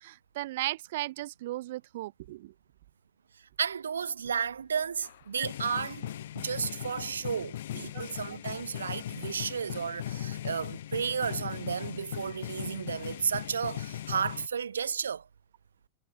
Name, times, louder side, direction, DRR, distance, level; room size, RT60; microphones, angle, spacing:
voice 1, 0.0-2.5 7.7-8.0, right 16 dB, 55° right, 0.5 m, -36 dB
voice 2, 3.6-15.3, right 7 dB, 70° right, 0.9 m, -33 dB
sound 1, 5.0-14.5, left 12 dB, 60° left, 1.0 m, -39 dB
figure-of-eight pair, 90°, 0 cm